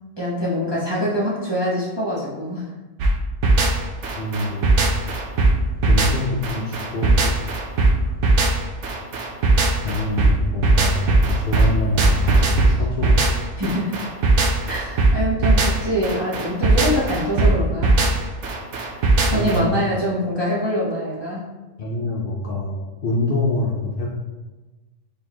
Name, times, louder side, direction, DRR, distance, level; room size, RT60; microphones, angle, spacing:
voice 1, 0.2-2.7 13.6-14.1 14.7-18.0 18.8-18.9 19.3-21.5, equal, 25° right, -6 dB, 0.6 m, -24 dB
sound 1, 3.0-19.6, right 2 dB, 70° right, 0.9 m, -19 dB
voice 2, 4.2-4.8 5.9-7.2 9.8-13.3 19.3-19.7 21.8-22.8 23.0-24.1, left 1 dB, 55° left, -3 dB, 0.6 m, -25 dB
4.0 x 3.3 x 3.0 m, 1.2 s
omnidirectional pair, 1.3 m